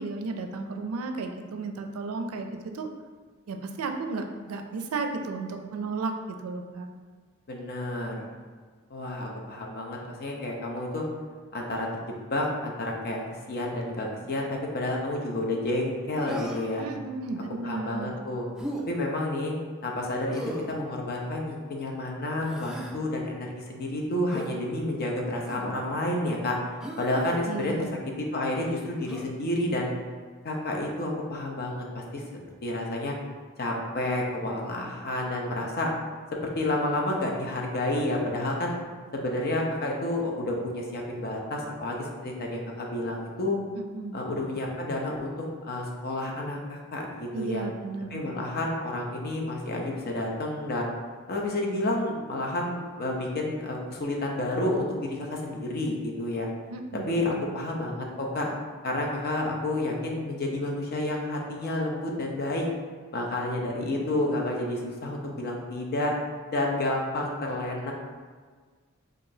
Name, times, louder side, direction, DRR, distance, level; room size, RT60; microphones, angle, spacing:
voice 1, 0.0-2.9 3.5-6.9 16.8-18.2 27.5-28.0 43.7-44.2 47.3-48.4 56.7-57.5, right 3 dB, 80° right, 5 dB, 0.4 m, -34 dB
voice 2, 7.5-8.3 8.9-11.0 11.5-13.2 13.5-16.8 17.6-18.5 18.9-19.5 19.8-26.6 27.0-27.7 28.3-29.9 30.4-32.2 32.6-33.1 33.6-35.9 36.6-38.7 39.1-43.6 44.1-45.3 45.6-47.6 48.1-50.9 51.3-56.5 57.1-58.5 58.8-62.6 63.1-66.1 66.5-67.9, left 1 dB, 45° left, 0 dB, 0.6 m, -30 dB
Human voice, 16.3-16.8 18.6-18.8 20.3-20.8 22.4-23.0 24.3-24.5 25.4-25.7 26.8-27.4 29.1-29.3, equal, 5° right, 0.3 m, -37 dB
4.7 x 2.5 x 2.7 m, 1.5 s
head